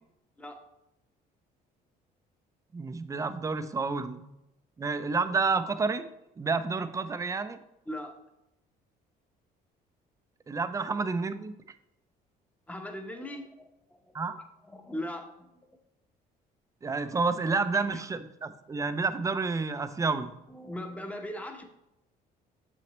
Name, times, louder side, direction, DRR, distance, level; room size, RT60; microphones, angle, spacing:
voice 1, 2.7-4.3 4.8-6.1 6.4-7.6 10.5-11.5 14.1-14.3 16.8-20.3, right 4 dB, 20° right, 11 dB, 0.4 m, -29 dB
voice 2, 7.9-8.2 12.7-13.7 14.0-14.1 14.6-15.5 17.7-18.0 20.5-21.6, left 1 dB, 10° left, 5 dB, 0.8 m, -39 dB
7.0 x 6.0 x 3.0 m, 0.88 s
cardioid pair, 110°, 17 cm